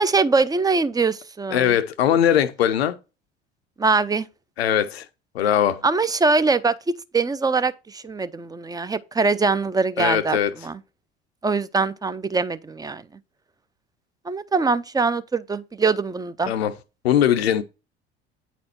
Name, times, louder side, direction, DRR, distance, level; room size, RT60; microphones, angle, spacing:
voice 1, 0.0-1.7 3.8-4.3 5.8-10.4 10.6-10.8 11.4-13.0 14.2-16.5, right 4 dB, 10° right, 0.5 m, -22 dB
voice 2, 1.5-3.0 4.6-5.1 5.3-5.8 10.0-10.5 16.5-16.7 17.0-17.6, left 10 dB, 80° left, 0.6 m, -20 dB
9.1 x 4.3 x 4.2 m
figure-of-eight pair, 60°, 31 cm